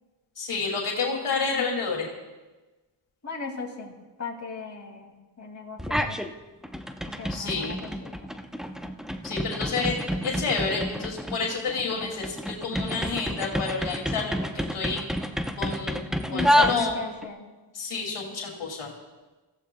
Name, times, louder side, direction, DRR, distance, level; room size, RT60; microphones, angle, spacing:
voice 1, 0.4-2.1 7.3-7.8 9.2-15.0 15.6-16.0 16.3-17.0 17.7-18.9, left 4 dB, 80° left, -1 dB, 2.6 m, -29 dB
voice 2, 3.2-6.2 7.2-8.3 16.3-17.5, left 4 dB, 35° left, 0 dB, 2.6 m, -37 dB
sound 1, 5.8-6.3 6.6-17.3, equal, ahead, 0.7 m, -29 dB
25.5 x 15.5 x 2.3 m, 1.2 s
cardioid pair, 75°, 49 cm